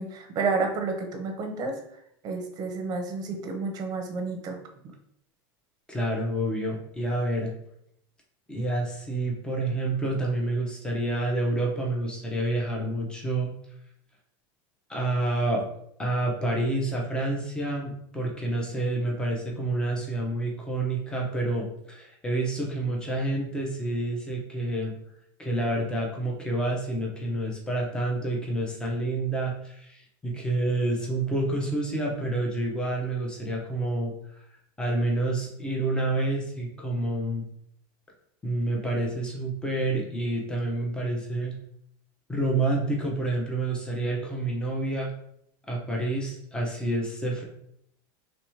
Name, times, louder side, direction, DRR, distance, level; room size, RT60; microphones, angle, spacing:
voice 1, 0.0-1.7 2.2-4.6, right 4 dB, 35° right, 4 dB, 0.8 m, -30 dB
voice 2, 5.9-7.5 8.5-13.5 14.9-15.6 16.0-24.9 25.4-34.1 34.8-37.4 38.4-41.5 42.3-45.1 45.7-47.4, right 2 dB, 5° left, -2 dB, 0.8 m, -28 dB
3.2 x 2.9 x 4.6 m, 0.73 s
supercardioid pair, 150°, 12 cm